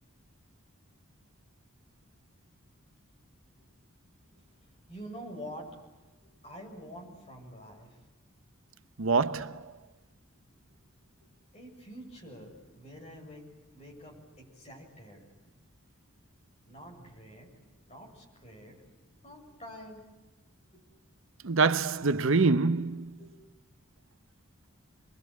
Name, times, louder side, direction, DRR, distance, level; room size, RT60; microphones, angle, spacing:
voice 1, 4.0-4.4 4.9-8.0 8.6-8.7 9.5-9.6 10.6-10.7 11.0-11.3 11.5-15.5 16.6-20.0 20.7-20.8 23.2-23.3, equal, 30° left, 7.6 m, -48 dB
voice 2, 9.0-9.5 21.4-23.0, right 4 dB, 70° right, 0.9 m, -25 dB
28.0 x 22.5 x 9.3 m
head